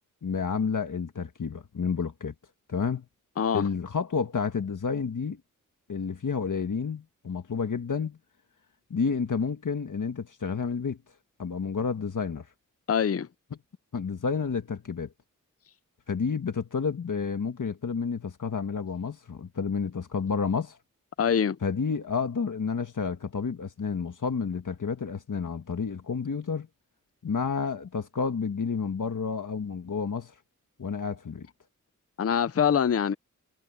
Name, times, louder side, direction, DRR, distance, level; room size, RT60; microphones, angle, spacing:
voice 1, 0.2-2.3 2.7-3.0 3.5-5.4 5.9-8.2 8.9-11.0 11.4-12.5 13.9-15.1 16.1-20.8 21.6-26.7 27.2-30.3 30.8-31.5, left 5 dB, 70° left, 1.6 m, -30 dB
voice 2, 3.4-3.7 12.9-13.3 21.2-21.6 32.2-33.1, left 7 dB, 45° left, 0.6 m, -24 dB
wide cardioid pair, 95°, 32 cm